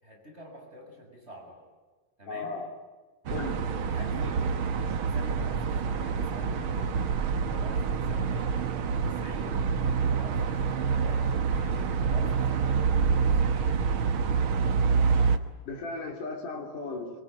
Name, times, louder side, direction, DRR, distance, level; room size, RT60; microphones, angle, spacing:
voice 1, 0.0-1.6 2.2-2.5 3.9-4.5 5.1-7.0 7.4-9.6 10.0-13.8, equal, 20° right, 0 dB, 6.9 m, -46 dB
voice 2, 2.3-2.7 3.3-3.7 15.7-17.2, left 3 dB, 70° left, 3 dB, 5.0 m, -36 dB
sound 1, 3.3-15.4, right 5 dB, 60° right, 1.4 m, -27 dB
24.5 x 23.5 x 9.4 m, 1.3 s
omnidirectional pair, 3.8 m